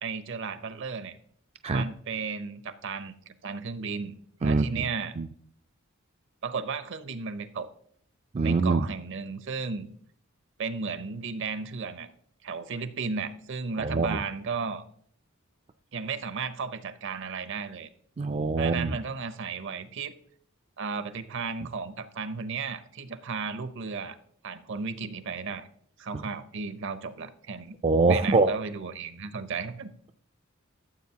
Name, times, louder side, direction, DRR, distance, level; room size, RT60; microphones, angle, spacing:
voice 1, 0.0-1.2 1.7-4.2 4.4-5.2 6.4-7.7 8.4-9.9 10.6-12.1 12.4-14.8 15.9-17.9 18.6-20.1 20.8-24.2 24.4-25.7 26.0-27.7 28.1-29.9, right 5 dB, 60° right, 13 dB, 0.7 m, -34 dB
voice 2, 4.4-4.9 5.2-5.3 8.3-8.9 13.8-14.2 18.2-19.0 27.8-28.5, right 3 dB, 30° right, 8 dB, 0.3 m, -24 dB
13.5 x 7.5 x 2.8 m, 0.62 s
head